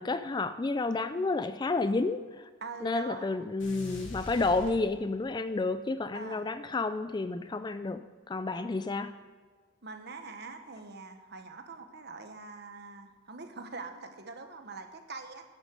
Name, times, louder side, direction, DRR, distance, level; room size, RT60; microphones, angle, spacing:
voice 1, 0.0-2.5 2.8-9.1, left 3 dB, 20° left, 12 dB, 0.3 m, -31 dB
voice 2, 2.6-3.4 6.1-6.5 8.4-9.0 9.8-15.4, right 3 dB, 50° right, 7 dB, 1.2 m, -44 dB
sound 1, 3.6-5.4, left 1 dB, 65° left, 3.0 m, -44 dB
11.5 x 9.7 x 5.3 m, 1.5 s
head